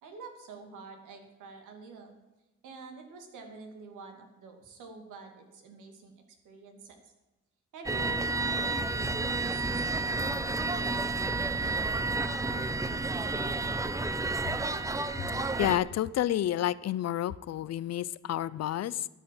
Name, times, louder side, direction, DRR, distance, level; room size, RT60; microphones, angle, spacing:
voice 1, 0.0-2.1 2.6-7.1 7.7-12.7, right 4 dB, 85° right, 4 dB, 2.6 m, -48 dB
sound 1, 7.8-15.8, right 3 dB, 10° right, 0.9 m, -30 dB
voice 2, 15.6-19.1, left 12 dB, 55° left, 18 dB, 0.6 m, -30 dB
12.5 x 8.5 x 7.7 m, 1.1 s
cardioid pair, 90°, 30 cm